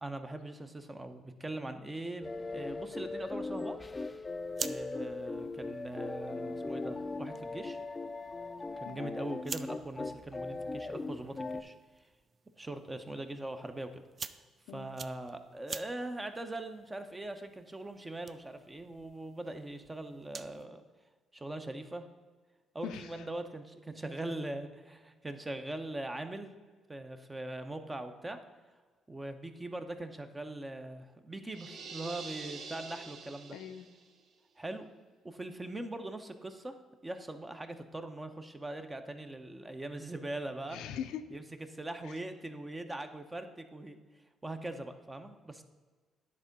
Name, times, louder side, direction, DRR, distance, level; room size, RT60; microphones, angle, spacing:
voice 1, 0.0-3.8 4.6-7.8 8.8-11.7 12.6-14.0 14.3-14.4 14.7-20.8 21.3-22.0 22.7-26.5 26.9-28.4 29.1-33.6 34.6-34.9 35.2-36.7 37.0-40.8 41.3-41.4 41.7-44.0 44.4-45.6, right 2 dB, 20° right, 8 dB, 0.8 m, -41 dB
sound 1, 2.2-11.6, left 3 dB, 25° left, 0.5 m, -39 dB
sound 2, 4.2-20.7, right 5 dB, 40° right, 0.4 m, -49 dB
voice 2, 22.8-23.2 33.5-33.9 40.7-41.2 42.1-42.2, left 9 dB, 80° left, 9 dB, 0.5 m, -41 dB
sound 3, 31.5-34.1, right 4 dB, 55° right, 0.7 m, -46 dB
9.8 x 3.7 x 5.3 m, 1.4 s
supercardioid pair, 70°, 0 cm